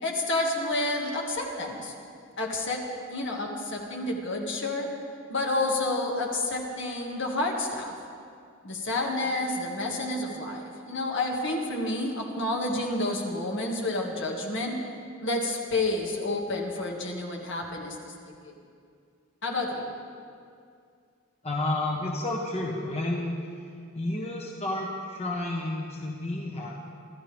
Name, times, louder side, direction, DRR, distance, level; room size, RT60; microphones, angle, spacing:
voice 1, 0.0-1.9 2.4-4.9 5.3-8.0 8.6-14.9 15.2-18.5 19.4-19.9, left 2 dB, 60° left, 0 dB, 2.1 m, -30 dB
voice 2, 21.4-23.4 23.9-26.7, left 2 dB, 30° left, -1 dB, 1.3 m, -31 dB
26.0 x 13.0 x 3.6 m, 2.3 s
head